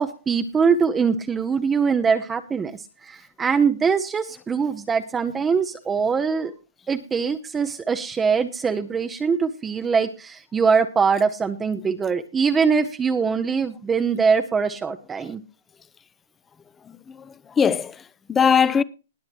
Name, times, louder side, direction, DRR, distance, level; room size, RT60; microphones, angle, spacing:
voice 1, 0.0-6.5 6.9-15.4, right 5 dB, 10° right, 0.8 m, -22 dB
voice 2, 16.8-18.8, left 7 dB, 15° left, 0.7 m, -21 dB
20.5 x 7.6 x 3.0 m
hypercardioid pair, 150°, 0 cm